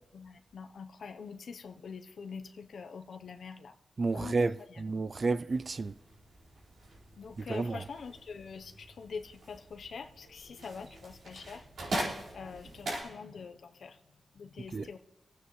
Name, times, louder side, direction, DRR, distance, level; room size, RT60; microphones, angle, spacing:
voice 1, 0.1-3.7 4.1-4.3 4.7-4.8 7.2-11.6 11.9-14.0 14.4-15.0, left 5 dB, 75° left, 0.7 m, -45 dB
voice 2, 4.0-5.9 7.4-7.8 14.7-14.9, right 3 dB, 40° right, 0.3 m, -31 dB
sound 1, 5.5-13.0, right 1 dB, 80° right, 4.8 m, -42 dB
25.5 x 9.3 x 3.1 m
wide cardioid pair, 110°, 0 cm